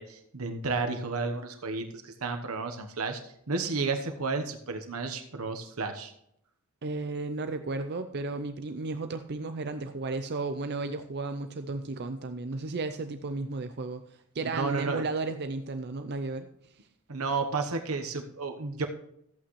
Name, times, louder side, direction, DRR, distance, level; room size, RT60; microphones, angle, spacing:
voice 1, 0.0-6.1 14.4-15.0 17.1-18.9, right 4 dB, 80° right, 5 dB, 1.2 m, -32 dB
voice 2, 6.8-16.7, right 3 dB, 50° right, 8 dB, 0.6 m, -34 dB
14.0 x 8.7 x 3.2 m, 0.73 s
head